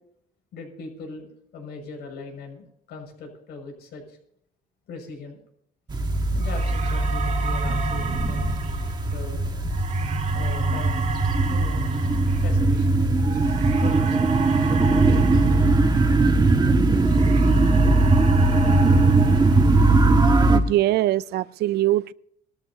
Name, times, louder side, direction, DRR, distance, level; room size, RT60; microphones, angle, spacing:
voice 1, 0.5-1.3 1.5-4.2 4.9-5.4 6.3-8.6 9.0-9.4 10.3-10.9 11.3-11.8 12.4-13.3 13.8-14.2 14.6-15.2 15.5-15.6, left 4 dB, 75° left, 6.1 m, -40 dB
sound 1, 5.9-20.6, right 2 dB, 25° right, 1.4 m, -20 dB
sound 2, 6.4-16.6 16.9-20.4, right 5 dB, 45° right, 2.0 m, -35 dB
voice 2, 20.5-22.1, right 14 dB, 70° right, 0.4 m, -22 dB
22.0 x 13.5 x 2.8 m
cardioid pair, 110°, 17 cm